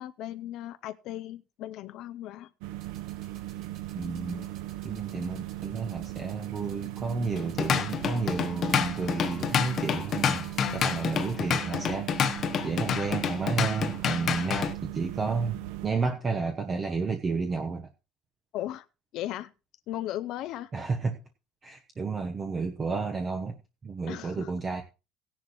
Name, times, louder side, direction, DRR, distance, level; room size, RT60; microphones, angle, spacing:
voice 1, 0.0-2.5 18.5-18.9 19.1-19.5 19.9-20.7 24.1-24.5, left 13 dB, 50° left, 12 dB, 0.5 m, -36 dB
sound 1, 2.6-15.9, right 15 dB, 85° right, 0.8 m, -38 dB
sound 2, 2.8-11.4, right 6 dB, 45° right, 4.5 m, -56 dB
voice 2, 3.9-4.4 4.8-12.3 12.6-17.9 20.7-21.2 21.6-23.6 23.8-24.8, right 4 dB, 20° right, 4 dB, 1.0 m, -31 dB
Drum kit / Drum, 7.4-14.7, left 8 dB, 35° left, 1.0 m, -28 dB
16.5 x 10.5 x 3.1 m, 0.30 s
cardioid pair, 170°, 0 cm